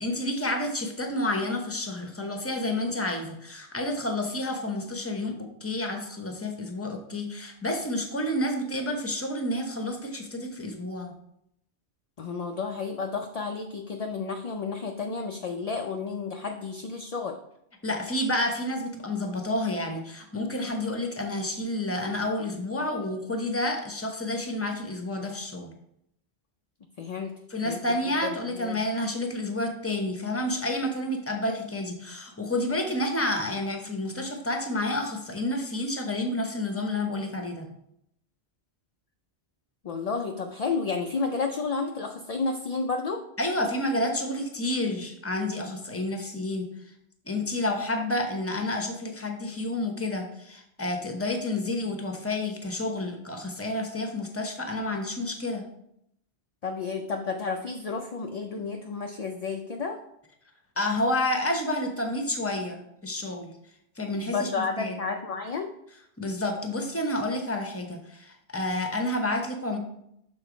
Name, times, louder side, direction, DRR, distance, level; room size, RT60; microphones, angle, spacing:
voice 1, 0.0-11.1 17.8-25.7 27.5-37.7 43.4-46.7 47.3-55.7 60.8-63.5 64.0-64.5 64.8-64.9 66.2-69.8, left 1 dB, 15° left, 4 dB, 0.8 m, -30 dB
voice 2, 12.2-17.4 27.0-27.3 27.6-27.8 28.2-28.8 39.8-43.2 56.6-60.0 64.3-65.7, left 4 dB, 50° left, 3 dB, 0.4 m, -31 dB
6.5 x 3.8 x 5.0 m, 0.76 s
omnidirectional pair, 1.1 m